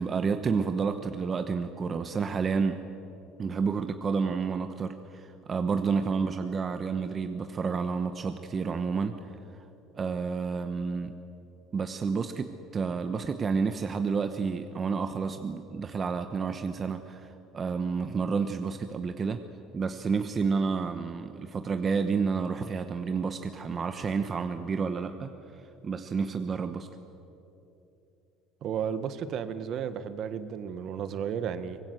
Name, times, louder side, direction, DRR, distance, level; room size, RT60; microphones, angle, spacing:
voice 1, 0.0-2.8 3.4-9.2 9.9-11.1 11.7-19.4 19.7-26.9, right 5 dB, 25° right, 8 dB, 1.0 m, -30 dB
voice 2, 28.6-31.8, right 8 dB, 50° right, 12 dB, 1.4 m, -33 dB
24.0 x 20.5 x 8.1 m, 2.9 s
cardioid pair, 140°, 0 cm